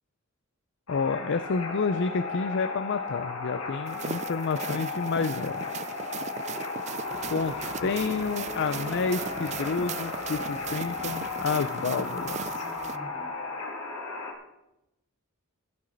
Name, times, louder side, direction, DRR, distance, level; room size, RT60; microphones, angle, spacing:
sound 1, 0.9-14.3, left 4 dB, 80° left, 2.1 m, -35 dB
voice 1, 0.9-5.7 7.3-12.7, left 5 dB, 55° left, 13 dB, 0.5 m, -29 dB
sound 2, 3.9-13.0, right 7 dB, 30° right, 0.3 m, -38 dB
sound 3, 7.0-13.3, right 1 dB, 65° right, 2.9 m, -46 dB
15.0 x 9.9 x 3.9 m, 0.92 s
head